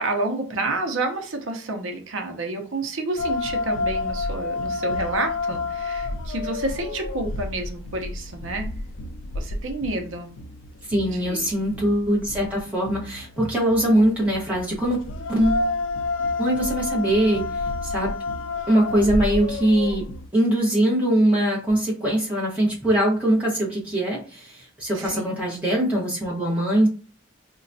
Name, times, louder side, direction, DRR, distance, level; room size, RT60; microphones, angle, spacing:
voice 1, 0.0-8.7 9.3-10.3 11.1-11.5 24.9-25.4, right 2 dB, 80° right, 4 dB, 0.6 m, -29 dB
sound 1, 3.2-20.3, left 3 dB, 75° left, 0.4 m, -30 dB
voice 2, 10.9-15.0 15.3-15.7 16.4-17.4 17.8-18.1 18.7-20.1 20.3-26.9, right 1 dB, 5° right, -6 dB, 1.0 m, -22 dB
3.9 x 2.2 x 2.6 m, 0.38 s
head